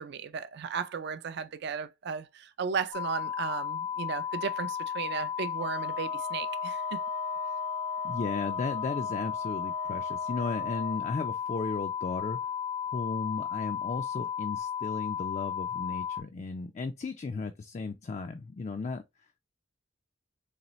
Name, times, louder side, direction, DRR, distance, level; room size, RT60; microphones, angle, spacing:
voice 1, 0.0-7.0, right 6 dB, 60° right, 0.4 m, -35 dB
sound 1, 2.9-16.2, left 8 dB, 90° left, 1.3 m, -34 dB
sound 2, 5.6-11.0, right 7 dB, 85° right, 0.7 m, -43 dB
voice 2, 8.0-12.4 12.9-19.0, left 4 dB, 35° left, 0.3 m, -35 dB
4.1 x 3.3 x 3.0 m
head